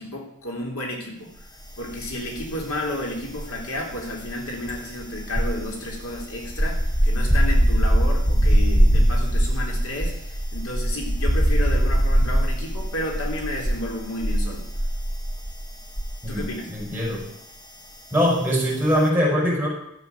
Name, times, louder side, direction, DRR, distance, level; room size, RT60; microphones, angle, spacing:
voice 1, 0.0-1.3 1.8-14.6 16.3-16.7, left 1 dB, 70° left, 0 dB, 3.4 m, -32 dB
sound 1, 1.9-2.7 3.0-16.5 16.8-17.1, equal, 20° left, 1.7 m, -21 dB
voice 2, 16.7-17.2 18.1-19.7, equal, 10° right, -4 dB, 5.4 m, -22 dB
12.5 x 8.0 x 8.0 m, 0.78 s
head